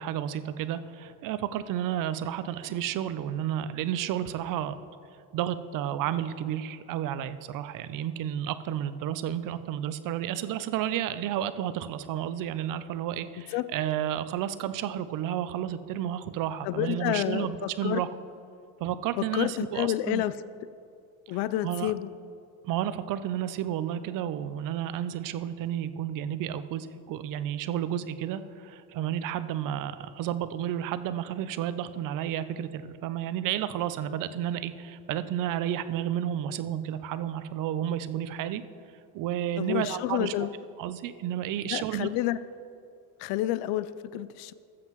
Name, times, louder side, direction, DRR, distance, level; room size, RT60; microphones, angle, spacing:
voice 1, 0.0-4.8 5.3-18.1 18.8-20.2 21.6-21.9 22.6-38.6 39.1-40.5 40.8-42.1, right 11 dB, 45° right, 13 dB, 0.6 m, -31 dB
voice 2, 16.6-18.0 19.2-20.3 21.3-22.1 39.6-40.5 41.6-42.4 43.2-44.5, left 14 dB, 60° left, 14 dB, 0.5 m, -29 dB
19.0 x 7.7 x 3.1 m, 2.4 s
cardioid pair, 130°, 44 cm